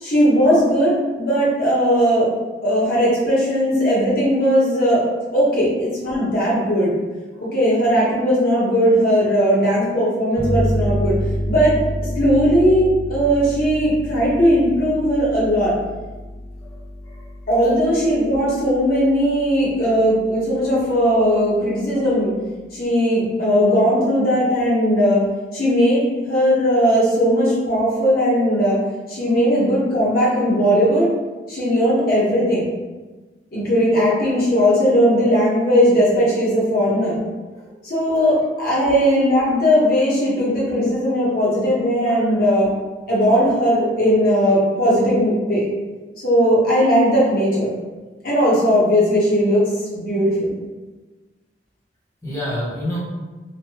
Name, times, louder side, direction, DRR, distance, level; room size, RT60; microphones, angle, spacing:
voice 1, 0.0-2.3 2.6-5.0 5.3-6.9 7.4-11.1 11.5-11.8 12.2-15.7 17.5-22.3 22.7-25.2 25.5-28.8 29.1-31.1 31.5-32.6 33.5-37.2 37.8-42.7 43.1-45.6 46.2-47.7 48.2-49.7 50.1-50.5, equal, 50° left, -7 dB, 1.0 m, -18 dB
sound 1, 10.4-19.7, equal, 20° right, 0.3 m, -28 dB
voice 2, 42.1-42.4 52.2-53.0, left 1 dB, 15° left, -7 dB, 0.8 m, -30 dB
3.1 x 2.2 x 2.9 m, 1.2 s
head